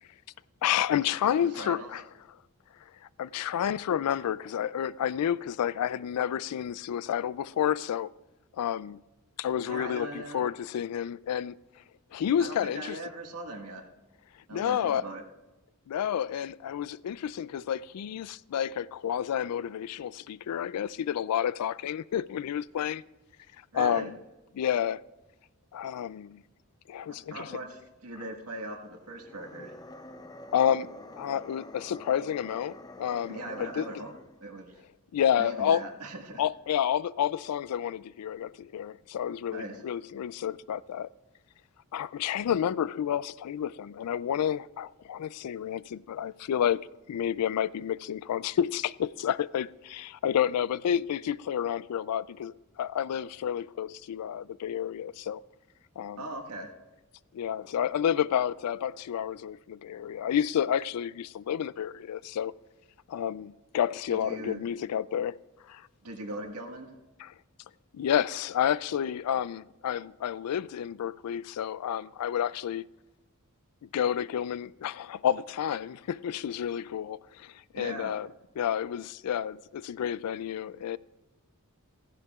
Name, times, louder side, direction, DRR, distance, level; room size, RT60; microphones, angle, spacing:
voice 1, 0.6-2.0 3.2-8.1 8.6-9.0 9.4-11.5 12.1-13.0 14.5-15.0 15.9-23.0 23.7-24.1 24.6-25.0 25.7-26.4 26.9-27.5 30.5-33.9 35.1-35.9 36.4-41.1 41.9-55.4 56.0-56.2 57.3-62.5 63.1-65.4 65.7-65.8 67.2-67.3 67.9-72.9 73.8-78.3 78.6-81.0, left 9 dB, 85° left, 0.3 m, -30 dB
voice 2, 1.3-1.9 9.7-10.5 12.4-13.9 14.5-15.2 23.7-24.1 27.1-29.8 33.3-34.1 34.4-34.8 35.4-36.4 39.5-39.8 56.2-56.7 64.1-64.6 66.0-67.0 77.7-78.1, right 2 dB, 85° right, 1.6 m, -40 dB
sound 1, 29.1-34.4, left 1 dB, 15° left, 0.4 m, -47 dB
15.5 x 15.5 x 2.4 m
head